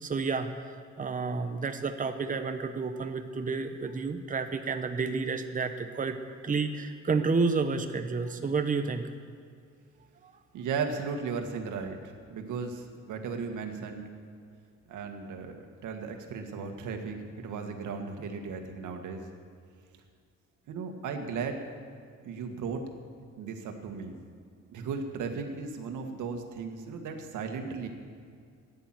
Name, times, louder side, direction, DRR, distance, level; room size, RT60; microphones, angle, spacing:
voice 1, 0.0-6.2 6.4-9.0, right 4 dB, 25° right, 7 dB, 1.0 m, -30 dB
voice 2, 10.5-14.1 14.9-19.2 20.7-21.6 22.2-22.8 23.4-24.1 24.7-27.9, right 5 dB, 80° right, 5 dB, 1.8 m, -36 dB
14.5 x 10.5 x 7.6 m, 2.3 s
cardioid pair, 90°, 30 cm